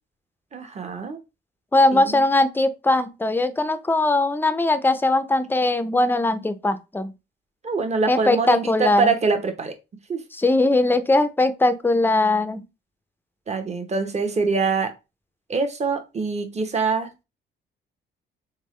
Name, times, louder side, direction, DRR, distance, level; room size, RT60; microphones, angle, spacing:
voice 1, 0.5-1.2 1.9-2.2 7.6-9.7 10.1-10.2 13.5-14.9 15.5-17.2, right 4 dB, 35° right, 1.0 m, -24 dB
voice 2, 1.7-7.1 8.1-9.1 10.3-12.6, left 2 dB, 10° left, 0.5 m, -20 dB
3.7 x 3.6 x 3.1 m
cardioid pair, 90°, 20 cm